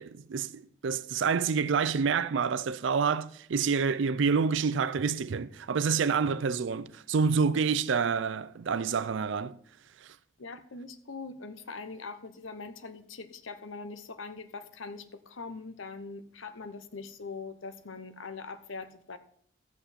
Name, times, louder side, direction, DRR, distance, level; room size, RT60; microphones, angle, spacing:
voice 1, 0.0-9.6 10.0-10.1, right 5 dB, 70° right, 0.4 m, -28 dB
voice 2, 10.4-19.2, left 4 dB, 85° left, 0.9 m, -42 dB
13.0 x 8.1 x 4.2 m
head